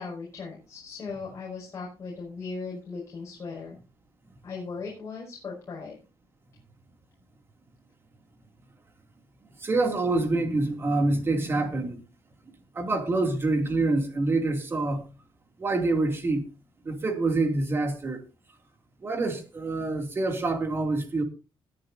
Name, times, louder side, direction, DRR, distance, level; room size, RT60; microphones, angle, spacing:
voice 1, 0.0-3.8 4.4-6.0, left 4 dB, 35° left, 5.9 m, -38 dB
voice 2, 9.6-12.0 12.7-15.0 15.6-16.4 16.8-18.2 19.0-21.2, right 2 dB, 25° right, 2.6 m, -26 dB
20.0 x 10.5 x 2.7 m
cardioid pair, 160°, 9 cm